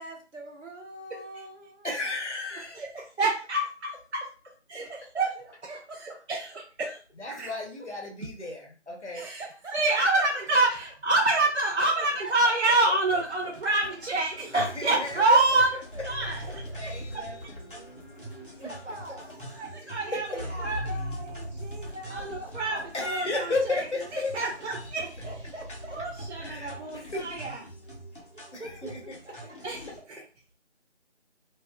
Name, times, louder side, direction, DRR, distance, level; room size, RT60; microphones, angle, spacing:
voice 1, 0.0-1.9 2.5-2.6 5.4-6.2 7.8-7.9 9.2-9.8 11.9-12.3 14.9-15.0 15.5-15.6 18.6-19.3 20.1-22.9 25.0-26.2 28.3-29.6, right 1 dB, 90° right, 2 dB, 1.0 m, -43 dB
voice 2, 1.8-2.8 7.2-9.2 14.5-15.4 16.5-18.7 20.1-20.2 22.9-24.3 26.4-27.3 28.5-29.1, left 2 dB, 70° left, 0 dB, 0.9 m, -34 dB
voice 3, 2.8-4.3 4.7-5.4 5.6-5.8 6.3-6.5 6.8-7.0 7.3-7.5 9.1-9.4 9.7-15.8 16.0-16.6 17.1-17.3 19.6-20.3 20.6-20.8 22.1-23.9 24.1-25.0 25.9-27.6 29.6-30.2, right 2 dB, 65° right, 1 dB, 0.5 m, -27 dB
sound 1, 13.0-30.0, equal, 45° left, 0.8 m, -41 dB
2.5 x 2.2 x 2.2 m, 0.36 s
figure-of-eight pair, 170°, 36 cm